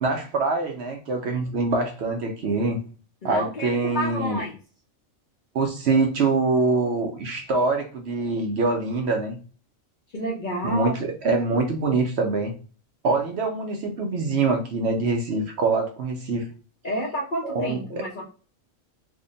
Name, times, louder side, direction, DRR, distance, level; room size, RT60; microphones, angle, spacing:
voice 1, 0.0-2.8 3.2-4.4 5.5-9.4 10.6-12.5 13.0-16.5 17.4-18.0, right 3 dB, 65° right, 3 dB, 0.8 m, -24 dB
voice 2, 3.2-4.5 10.1-10.9 16.8-18.2, equal, 50° left, -1 dB, 0.6 m, -29 dB
3.4 x 2.1 x 3.8 m, 0.38 s
omnidirectional pair, 1.4 m